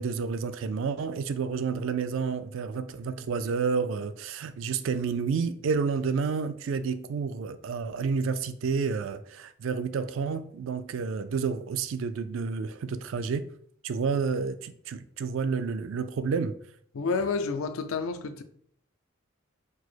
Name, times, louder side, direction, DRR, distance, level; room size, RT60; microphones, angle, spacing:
voice 1, 0.0-13.5 13.8-16.6, right 5 dB, 65° right, 0.3 m, -30 dB
voice 2, 16.9-18.4, left 4 dB, 80° left, 0.5 m, -29 dB
4.4 x 2.0 x 4.5 m
head